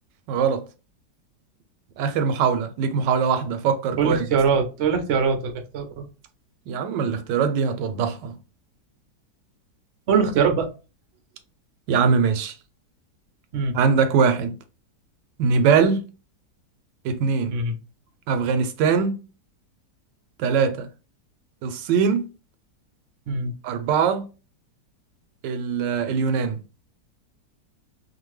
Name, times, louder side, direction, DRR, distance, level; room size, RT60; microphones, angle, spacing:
voice 1, 0.3-0.7 2.0-4.3 6.7-8.4 11.9-12.5 13.7-14.5 15.4-16.0 17.0-17.5 18.3-19.2 20.4-20.9 21.6-22.3 23.6-24.3 25.4-26.6, right 6 dB, 85° right, 1.2 m, -22 dB
voice 2, 4.0-6.0 10.1-10.7 13.5-13.7 17.5-17.7 23.3-23.5, right 5 dB, 65° right, 0.6 m, -22 dB
2.8 x 2.5 x 3.1 m
omnidirectional pair, 1.8 m